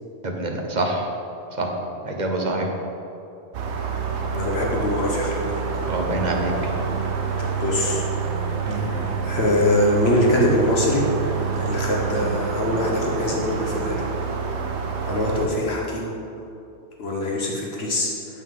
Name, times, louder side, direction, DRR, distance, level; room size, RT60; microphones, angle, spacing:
voice 1, 0.2-1.1 1.6-1.7 2.0-2.7 5.9-6.7 8.7-9.0, right 2 dB, 45° right, 1 dB, 1.1 m, -26 dB
sound 1, 3.5-15.5, right 5 dB, 85° right, 1.0 m, -27 dB
voice 2, 4.3-5.6 7.4-8.0 8.8-11.1 11.5-14.1 15.0-16.1 17.0-18.1, left 1 dB, 65° left, -2 dB, 1.3 m, -23 dB
sound 2, 5.7-14.4, right 1 dB, 40° left, 1.5 m, -38 dB
8.9 x 7.6 x 3.7 m, 2.8 s
omnidirectional pair, 1.1 m